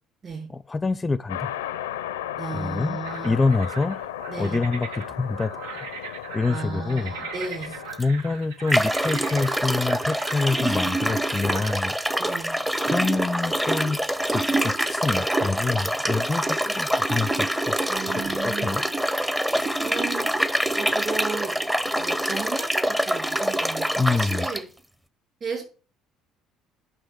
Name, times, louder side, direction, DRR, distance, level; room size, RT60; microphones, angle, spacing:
voice 1, 0.5-1.5 2.5-4.0 4.4-5.5 5.8-5.9 6.3-7.1 8.0-11.9 12.9-14.0 14.3-17.8 18.2-18.8 24.0-24.5, left 3 dB, 20° left, 17 dB, 0.5 m, -26 dB
sound 1, 1.3-8.0, left 11 dB, 80° left, 0.6 m, -35 dB
voice 2, 2.4-3.4 4.3-4.6 6.5-7.7 12.2-12.6 17.9-18.9 19.8-20.3 20.5-21.5 22.0-24.6 25.4-25.6, right 4 dB, 40° right, 3 dB, 6.0 m, -35 dB
sound 2, 3.0-11.8, right 5 dB, 75° right, 1.0 m, -39 dB
sound 3, 7.9-8.0 8.7-24.6, right 1 dB, 10° right, 0.8 m, -25 dB
9.7 x 5.9 x 6.3 m, 0.38 s
figure-of-eight pair, 55°, 0 cm